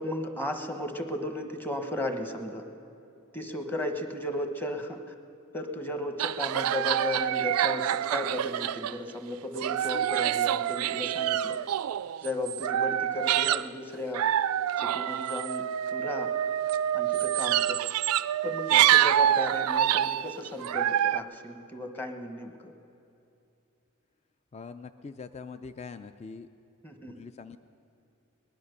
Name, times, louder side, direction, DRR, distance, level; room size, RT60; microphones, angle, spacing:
voice 1, 0.0-2.6 3.3-5.1 5.5-11.6 12.2-14.2 14.8-16.3 16.9-17.8 18.4-22.7 26.8-27.2, left 1 dB, 10° left, 5 dB, 1.0 m, -35 dB
sound 1, 6.2-9.1 9.5-13.7 14.1-21.2, right 11 dB, 90° right, 0.3 m, -26 dB
voice 2, 24.5-26.5 27.0-27.6, left 5 dB, 30° left, 10 dB, 0.3 m, -43 dB
19.5 x 11.0 x 6.6 m, 2.8 s
head